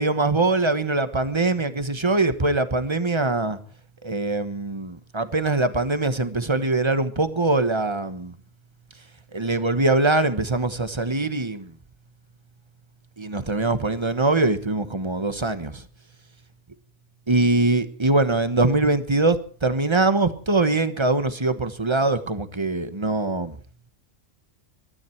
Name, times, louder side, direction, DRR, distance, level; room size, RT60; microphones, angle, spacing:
voice 1, 0.0-3.6 4.0-8.3 9.3-11.7 13.2-15.7 17.3-19.4 19.6-23.5, right 2 dB, 25° right, 1.3 m, -22 dB
22.5 x 13.0 x 4.6 m
omnidirectional pair, 1.3 m